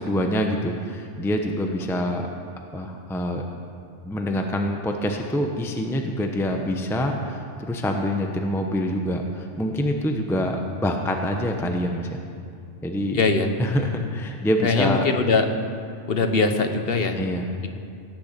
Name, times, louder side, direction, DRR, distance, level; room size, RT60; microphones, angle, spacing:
voice 1, 0.0-2.3 2.6-3.4 4.0-12.2 12.8-13.2 13.6-15.1 17.2-17.5, equal, ahead, 3 dB, 0.8 m, -26 dB
voice 2, 13.1-13.5 14.6-15.5 16.1-17.2 17.6-17.7, left 4 dB, 55° left, 7 dB, 1.2 m, -21 dB
17.5 x 7.0 x 8.4 m, 2.5 s
omnidirectional pair, 1.2 m